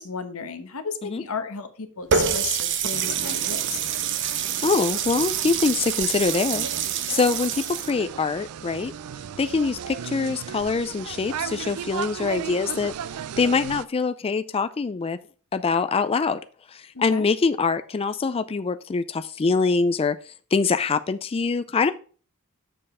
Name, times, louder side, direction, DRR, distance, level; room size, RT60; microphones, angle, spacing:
voice 1, 0.0-3.8 16.9-17.3, left 6 dB, 70° left, 9 dB, 1.1 m, -34 dB
Water tap faucet, 2.1-7.9, right 8 dB, 55° right, 0.8 m, -26 dB
sound 1, 2.9-13.9, right 8 dB, 80° right, 0.4 m, -36 dB
voice 2, 4.6-6.7 7.1-8.9 9.4-12.9 13.4-15.2 15.5-16.4 16.7-21.9, left 4 dB, 25° left, 11 dB, 0.4 m, -24 dB
6.9 x 5.4 x 4.8 m, 0.39 s
head